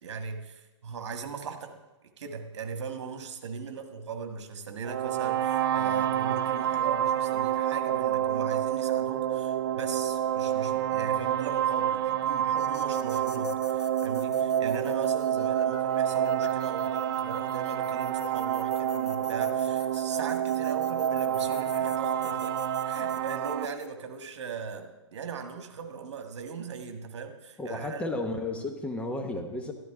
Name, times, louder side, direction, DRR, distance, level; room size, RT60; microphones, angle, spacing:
voice 1, 0.0-1.7 2.2-28.0, right 5 dB, 70° right, 5 dB, 1.8 m, -39 dB
sound 1, 4.8-23.7, right 10 dB, 50° right, 0.6 m, -28 dB
sound 2, 12.6-23.9, left 9 dB, 65° left, 0.9 m, -46 dB
voice 2, 27.6-29.7, left 2 dB, 10° left, 4 dB, 1.0 m, -33 dB
13.5 x 12.5 x 3.7 m, 1.1 s
hypercardioid pair, 140°, 15 cm